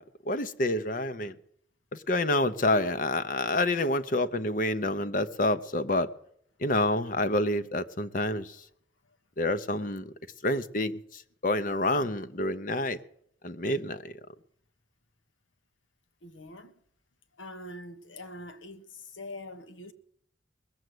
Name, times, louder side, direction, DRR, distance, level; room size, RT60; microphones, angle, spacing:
voice 1, 0.0-1.4 1.9-6.1 6.6-8.6 9.4-10.1 10.4-13.0 13.4-14.1, left 1 dB, 45° left, 0.8 m, -28 dB
voice 2, 16.2-16.7 17.4-19.9, left 1 dB, 85° left, 1.4 m, -44 dB
20.5 x 8.0 x 7.9 m
head